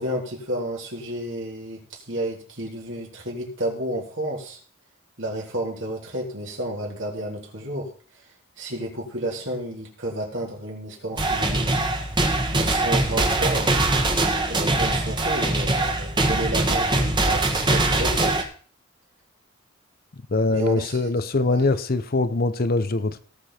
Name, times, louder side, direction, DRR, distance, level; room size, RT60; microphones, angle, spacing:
voice 1, 0.0-4.6 5.2-7.9 8.6-11.9 12.5-13.7 14.4-18.5 20.5-21.7, right 1 dB, 70° right, -1 dB, 3.9 m, -31 dB
sound 1, 11.2-18.4, right 2 dB, 25° right, 1.7 m, -22 dB
voice 2, 20.3-23.2, left 2 dB, 50° left, 13 dB, 0.7 m, -23 dB
18.0 x 6.8 x 4.4 m, 0.42 s
head